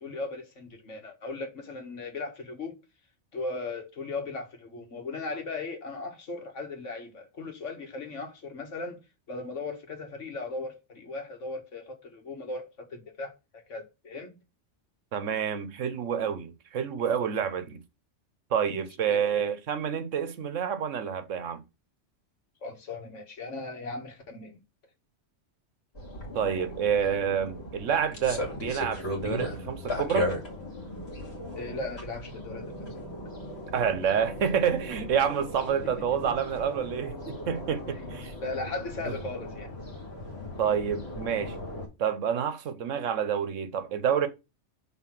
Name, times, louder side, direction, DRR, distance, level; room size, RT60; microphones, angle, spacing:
voice 1, 0.0-2.8 3.3-9.0 9.3-14.4 19.1-19.4 22.6-24.6 31.6-33.2 37.9-38.0 38.4-39.7, left 3 dB, 80° left, 2.0 m, -37 dB
voice 2, 15.1-17.8 18.5-21.6 26.3-30.3 33.7-38.3 39.1-39.2 40.6-41.6 42.0-44.3, right 7 dB, 85° right, 1.2 m, -28 dB
sound 1, 25.9-41.9, left 1 dB, 55° left, 2.4 m, -37 dB
5.7 x 4.0 x 6.0 m
omnidirectional pair, 1.3 m